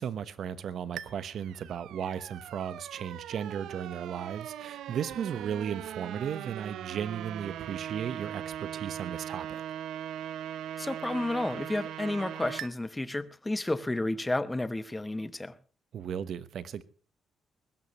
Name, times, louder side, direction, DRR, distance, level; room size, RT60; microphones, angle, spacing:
voice 1, 0.0-9.6 15.9-16.8, right 8 dB, 60° right, 1.1 m, -35 dB
sound 1, 1.0-12.7, right 10 dB, 85° right, 0.7 m, -40 dB
voice 2, 10.8-15.5, left 2 dB, 10° left, 0.9 m, -31 dB
21.0 x 16.5 x 3.1 m
cardioid pair, 145°, 0 cm